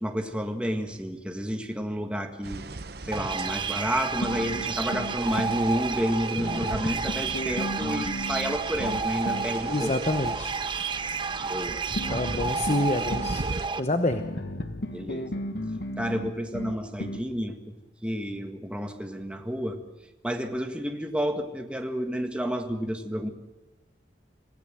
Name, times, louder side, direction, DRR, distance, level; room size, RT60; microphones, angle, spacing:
voice 1, 0.0-2.6 3.1-9.9 11.4-11.8 14.9-15.3 16.0-17.7 18.0-19.8 20.2-23.3, equal, 5° right, 4 dB, 1.8 m, -30 dB
sound 1, 2.4-13.7, right 3 dB, 60° right, 0.9 m, -39 dB
sound 2, 3.1-13.8, right 5 dB, 25° right, 0.8 m, -31 dB
sound 3, 4.2-5.6 6.4-9.6 12.0-13.4 14.1-17.3, left 1 dB, 65° left, 1.4 m, -34 dB
voice 2, 9.7-10.6 12.1-13.5 13.8-14.2, left 2 dB, 35° left, 8 dB, 1.0 m, -27 dB
26.5 x 17.0 x 7.7 m, 1.1 s
head